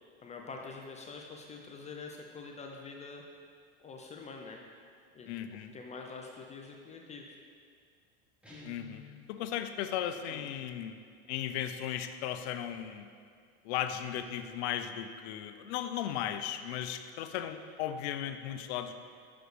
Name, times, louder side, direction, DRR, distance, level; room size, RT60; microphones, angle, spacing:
voice 1, 0.2-3.2 3.8-4.6 5.1-5.3 5.7-7.4 10.3-10.5, left 4 dB, 20° left, 1 dB, 0.4 m, -45 dB
voice 2, 5.3-5.7 8.6-9.0 9.3-11.0 11.3-13.1 13.6-18.9, left 10 dB, 80° left, 9 dB, 0.5 m, -36 dB
Guitar, 8.4-9.2, left 1 dB, 5° right, 1.1 m, -50 dB
6.2 x 5.0 x 3.2 m, 2.1 s
supercardioid pair, 120°, 32 cm